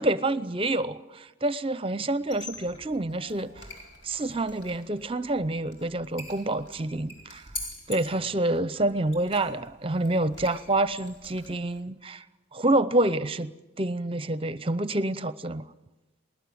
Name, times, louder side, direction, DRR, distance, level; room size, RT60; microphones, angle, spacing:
voice 1, 0.0-3.7 4.0-7.4 7.9-12.2 12.5-13.5 13.8-15.6, right 2 dB, 30° right, 15 dB, 0.7 m, -27 dB
Squeak, 2.2-11.8, left 2 dB, 60° left, 4.5 m, -45 dB
20.0 x 20.0 x 9.4 m, 0.97 s
head